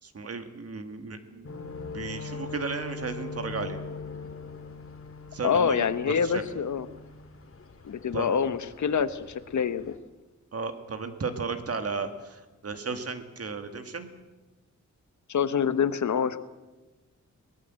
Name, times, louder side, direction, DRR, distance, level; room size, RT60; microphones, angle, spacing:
voice 1, 0.0-1.5 1.9-3.8 5.3-6.4 8.1-8.3 10.5-14.1, right 4 dB, 50° right, 8 dB, 2.0 m, -34 dB
sound 1, 1.4-7.9 8.3-8.6 9.0-9.5 9.9-10.0, left 4 dB, 45° left, 2.0 m, -40 dB
voice 2, 5.4-6.9 7.8-9.9 15.3-16.4, left 7 dB, 70° left, 13 dB, 1.1 m, -26 dB
23.5 x 19.0 x 7.7 m, 1.1 s
wide cardioid pair, 160°, 30 cm